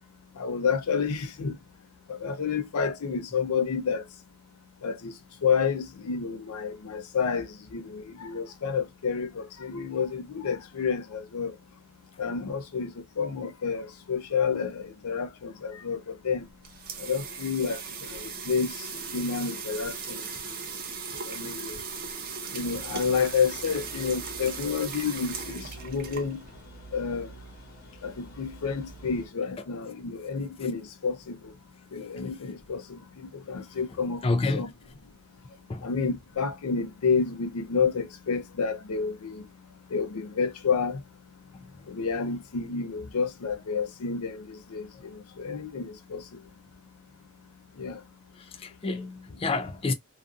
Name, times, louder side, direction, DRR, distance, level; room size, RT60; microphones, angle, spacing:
voice 1, 0.4-1.6 2.1-4.0 4.8-5.1 5.4-11.5 12.2-16.5 17.0-20.3 21.1-21.8 22.5-26.4 26.9-27.3 28.0-31.5 31.9-34.7 35.8-39.4 39.9-41.0 41.9-46.2 47.8-48.0, left 5 dB, 85° left, 0.5 m, -30 dB
sound 1, 16.4-26.6, right 5 dB, 40° right, 0.5 m, -38 dB
sound 2, 22.6-29.3, right 2 dB, 45° left, 1.0 m, -47 dB
voice 2, 34.2-34.6 35.7-35.9 48.6-49.9, left 3 dB, 25° left, 0.3 m, -28 dB
2.4 x 2.4 x 2.3 m
head